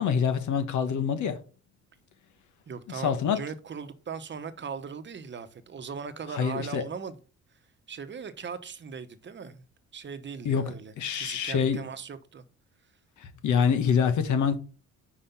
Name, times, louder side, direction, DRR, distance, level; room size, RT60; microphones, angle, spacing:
voice 1, 0.0-1.4 2.9-3.4 6.3-6.8 10.4-11.8 13.4-14.6, left 7 dB, 75° left, 1.3 m, -26 dB
voice 2, 2.7-7.2 7.9-9.6 9.9-10.9 11.2-12.4, right 6 dB, 40° right, 1.0 m, -39 dB
5.4 x 4.9 x 5.7 m
cardioid pair, 90°, 30 cm